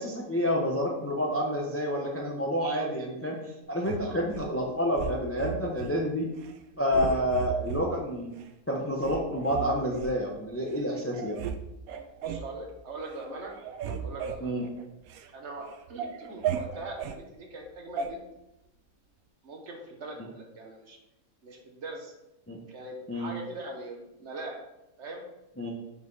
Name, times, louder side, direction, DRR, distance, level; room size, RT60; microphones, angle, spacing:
voice 1, 0.0-3.4 3.7-6.3 6.8-8.4 8.7-11.4 14.4-14.7 22.5-22.6 23.1-23.3 25.6-25.7, equal, 15° left, 0 dB, 0.5 m, -29 dB
sound 1, 3.8-4.5 5.0-5.9 6.3-6.6 6.9-7.8 8.4-8.5 9.0-10.1 10.7-10.8 11.1-11.6 11.9-12.5 12.9-13.2 13.5-15.3 15.7-17.2 18.0-18.1, right 8 dB, 85° right, 1.0 m, -35 dB
voice 2, 12.2-13.5 14.0-14.6 15.3-18.2 19.4-21.0 21.4-22.1 22.7-24.6 25.0-25.2, right 2 dB, 55° right, 1 dB, 1.2 m, -41 dB
5.5 x 4.7 x 4.0 m, 0.90 s
omnidirectional pair, 1.5 m